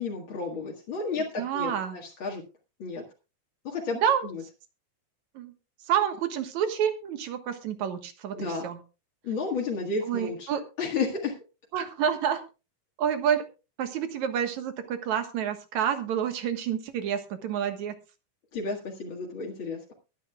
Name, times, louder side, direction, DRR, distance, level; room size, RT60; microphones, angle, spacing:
voice 1, 0.0-2.4 2.8-3.0 3.6-4.4 8.3-8.7 9.2-10.5 10.8-11.4 18.5-19.9, left 4 dB, 45° left, -1 dB, 2.2 m, -32 dB
voice 2, 1.4-2.0 4.0-4.3 5.4-5.5 5.9-8.4 8.6-8.8 10.0-10.6 11.7-12.4 13.0-13.5 13.8-17.9, right 8 dB, 65° right, 7 dB, 2.7 m, -28 dB
22.5 x 9.7 x 2.4 m, 0.30 s
omnidirectional pair, 3.7 m